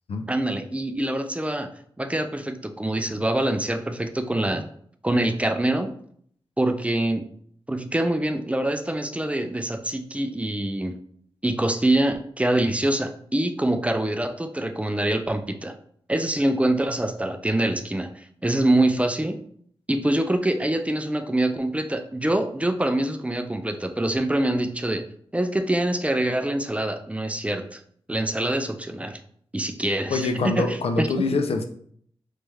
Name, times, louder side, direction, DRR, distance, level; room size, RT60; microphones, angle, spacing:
voice 1, 0.3-1.7 2.0-4.6 5.0-5.9 6.6-7.2 7.7-11.0 11.4-15.7 16.1-19.4 19.9-25.0 25.3-27.8 28.1-29.2 29.5-31.3, right 1 dB, 15° right, 7 dB, 0.3 m, -25 dB
voice 2, 30.1-31.6, left 3 dB, 80° left, 6 dB, 0.5 m, -25 dB
3.2 x 3.1 x 3.4 m, 0.62 s
wide cardioid pair, 80°, 10 cm